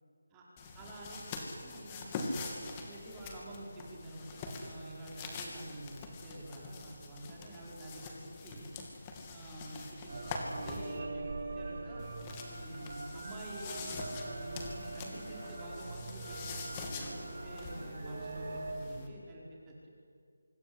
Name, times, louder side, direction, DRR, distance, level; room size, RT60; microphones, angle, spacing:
sound 1, 0.6-11.0 12.0-19.1, left 3 dB, 15° left, 2.7 m, -44 dB
voice 1, 0.7-8.7 9.3-12.1 12.5-19.9, right 1 dB, 10° right, -4 dB, 5.1 m, -48 dB
sound 2, 10.1-18.7, right 2 dB, 45° right, 5.4 m, -42 dB
25.5 x 24.0 x 8.1 m, 2.3 s
figure-of-eight pair, 170°, 0 cm